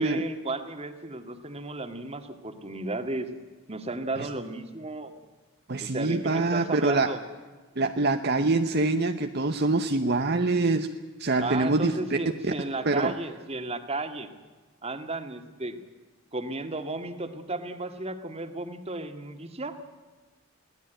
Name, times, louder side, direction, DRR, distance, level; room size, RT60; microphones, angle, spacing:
voice 1, 0.0-3.3 3.7-5.2 5.8-7.2 11.4-14.3 14.8-15.8 16.3-19.8, right 2 dB, 30° right, 8 dB, 1.9 m, -34 dB
voice 2, 5.7-7.1 7.8-10.9 11.2-12.2 12.4-12.5 12.8-13.1, right 3 dB, 50° right, 7 dB, 1.0 m, -25 dB
23.0 x 17.5 x 9.2 m, 1.3 s
head